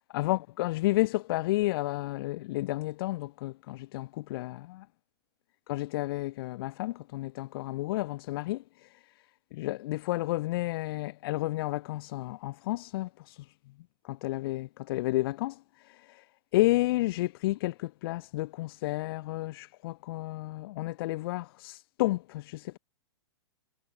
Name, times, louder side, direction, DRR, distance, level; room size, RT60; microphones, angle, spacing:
voice 1, 0.0-4.9 5.7-8.9 9.5-13.4 14.0-16.2 16.5-22.8, left 18 dB, 55° left, 3.2 m, -31 dB
hypercardioid pair, 115°, 15 cm